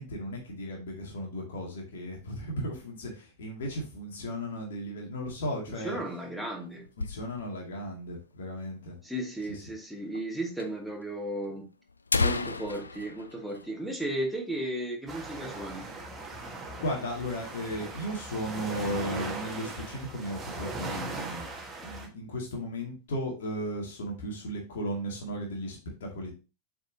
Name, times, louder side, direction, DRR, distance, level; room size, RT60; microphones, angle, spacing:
voice 1, 0.0-6.0 7.0-9.0 9.5-9.6 16.4-21.5 21.8-26.3, equal, 60° left, -1 dB, 2.2 m, -35 dB
voice 2, 5.8-6.9 9.0-11.6 12.2-15.8, right 1 dB, ahead, 0 dB, 1.7 m, -35 dB
sound 1, 5.9-7.7 8.1-8.2 8.4-8.5 9.1-9.2 10.1-10.3 10.6-10.7 11.4-11.5 11.9-14.5 14.8-14.9 15.3-15.6 16.0-16.6, left 4 dB, 80° left, 0.4 m, -33 dB
sound 2, 15.1-22.1, right 3 dB, 20° right, 1.4 m, -39 dB
7.2 x 4.8 x 2.7 m, 0.32 s
figure-of-eight pair, 90°, 0 cm